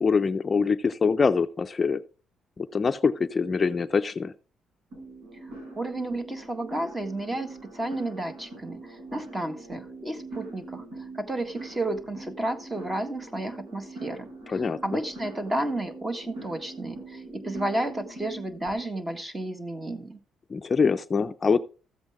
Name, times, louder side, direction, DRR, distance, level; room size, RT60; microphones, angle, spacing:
voice 1, 0.0-2.0 2.6-4.3 14.5-14.8 20.5-21.6, left 5 dB, 35° left, 10 dB, 0.5 m, -24 dB
sound 1, 4.9-18.7, right 3 dB, 85° right, 5.9 m, -43 dB
voice 2, 5.7-20.2, right 1 dB, 20° right, 8 dB, 1.7 m, -32 dB
14.0 x 7.9 x 3.5 m, 0.37 s
cardioid pair, 85°, 0 cm